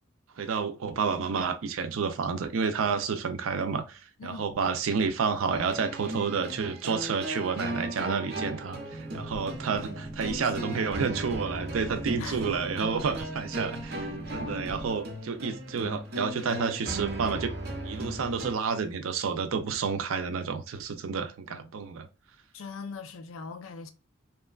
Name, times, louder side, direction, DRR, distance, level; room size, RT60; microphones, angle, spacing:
voice 1, 0.4-17.5 17.8-22.1, right 5 dB, 85° right, 0.4 m, -30 dB
sound 1, 5.5-18.5, right 1 dB, 50° right, 0.7 m, -37 dB
Boat Water vehicle, 8.9-14.9, right 2 dB, 5° left, 0.4 m, -41 dB
voice 2, 12.2-12.8 14.2-14.3 21.2-21.8 22.5-23.9, left 5 dB, 85° left, 0.4 m, -42 dB
2.9 x 2.2 x 2.3 m
head